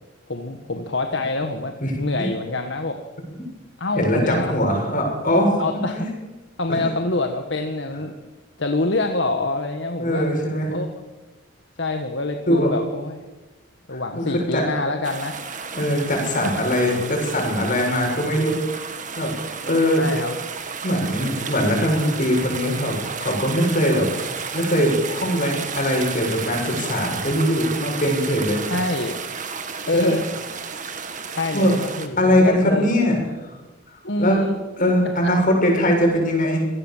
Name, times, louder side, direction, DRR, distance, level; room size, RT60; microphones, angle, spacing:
voice 1, 0.3-3.0 3.8-4.6 5.6-6.1 6.6-8.1 8.6-10.3 10.7-10.9 11.8-13.2 13.9-15.3 16.2-16.5 20.0-20.4 28.7-29.2 29.9-30.3 31.3-33.0 34.0-34.6 35.2-35.3 35.7-35.8, left 2 dB, 65° left, 5 dB, 1.6 m, -26 dB
voice 2, 4.0-5.6 5.9-6.1 6.7-6.8 10.0-10.7 12.5-12.7 13.9-14.6 15.7-19.3 19.6-20.1 20.8-24.1 24.5-28.6 29.9-30.1 31.5-31.7 32.2-33.2 33.5-33.6 34.2-34.4 34.8-36.6, equal, 45° left, 1 dB, 7.6 m, -21 dB
sound 1, 15.0-32.1, right 5 dB, 40° right, 2.1 m, -32 dB
26.0 x 17.5 x 7.5 m, 1.2 s
head